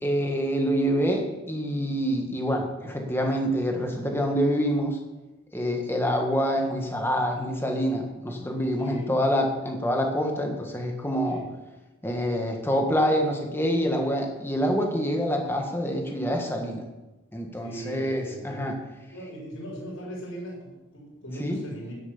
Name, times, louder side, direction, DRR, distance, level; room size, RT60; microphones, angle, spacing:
voice 1, 0.0-5.0 5.5-11.4 12.0-16.8 17.3-18.8 21.4-21.6, equal, 10° left, 2 dB, 1.5 m, -26 dB
voice 2, 8.8-9.1 11.2-11.4 17.6-18.7 19.1-21.9, right 1 dB, 75° left, -6 dB, 5.0 m, -39 dB
10.5 x 8.0 x 7.1 m, 1.1 s
head